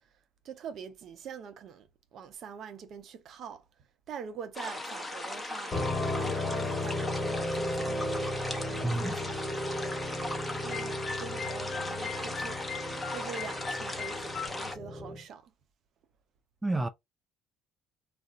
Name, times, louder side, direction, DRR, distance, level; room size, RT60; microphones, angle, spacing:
voice 1, 0.0-10.1 10.6-15.5, right 6 dB, 60° right, 0.6 m, -45 dB
sound 1, 4.5-14.7, left 2 dB, 10° left, 0.8 m, -38 dB
sound 2, 5.7-15.2, left 1 dB, 35° left, 1.2 m, -35 dB
voice 2, 8.8-9.2 16.6-16.9, right 2 dB, 15° right, 0.4 m, -29 dB
sound 3, 10.7-14.5, left 7 dB, 50° left, 0.4 m, -41 dB
2.4 x 2.1 x 3.9 m
supercardioid pair, 75°, 0 cm